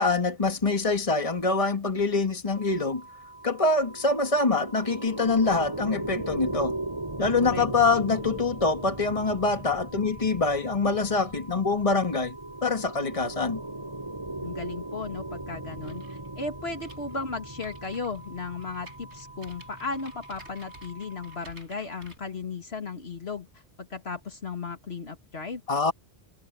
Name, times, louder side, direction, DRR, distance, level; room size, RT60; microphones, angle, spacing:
voice 1, 0.0-3.0 3.4-6.7 7.2-12.3 12.6-13.6 25.7-25.9, left 3 dB, 30° left, 1.9 m, -25 dB
sound 1, 2.5-21.5, right 2 dB, 85° left, 6.8 m, -49 dB
sound 2, 3.4-20.9, right 2 dB, 20° right, 5.5 m, -38 dB
voice 2, 14.4-16.0 16.4-23.5 23.8-25.6, left 4 dB, 65° left, 2.3 m, -35 dB
sound 3, 15.8-22.2, right 1 dB, 85° right, 8.4 m, -52 dB
omnidirectional pair, 1.1 m